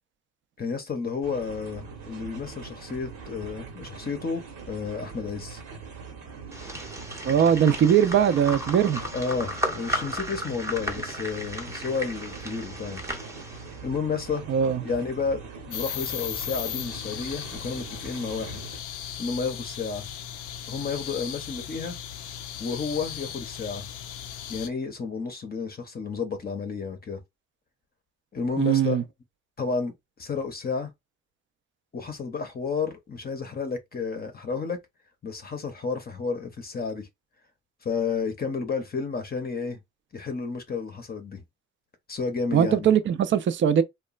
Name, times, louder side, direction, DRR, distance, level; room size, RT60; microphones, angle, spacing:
voice 1, 0.6-5.6 9.1-13.0 13.8-14.4 14.8-18.6 19.2-20.1 20.7-22.0 22.6-23.9 24.5-27.2 28.3-29.0 29.6-29.9 30.2-30.9 31.9-34.8 35.2-37.1 37.8-39.8 40.1-41.4 42.1-42.8, left 5 dB, 30° left, 0.7 m, -31 dB
sound 1, 1.2-18.8, right 5 dB, 85° right, 1.0 m, -42 dB
sound 2, 6.5-13.8, equal, 10° right, 0.7 m, -35 dB
voice 2, 7.2-9.0 14.5-14.8 28.6-29.0 42.5-43.8, right 8 dB, 40° right, 0.4 m, -21 dB
sound 3, 15.7-24.7, left 10 dB, 90° left, 0.5 m, -37 dB
2.9 x 2.2 x 2.3 m
cardioid pair, 90°, 30 cm